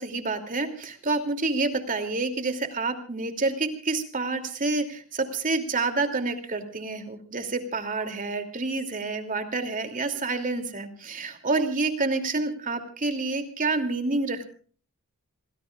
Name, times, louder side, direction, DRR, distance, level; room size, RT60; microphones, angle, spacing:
voice 1, 0.0-14.5, right 3 dB, 35° right, 6 dB, 2.8 m, -28 dB
28.5 x 19.5 x 2.4 m, 0.43 s
head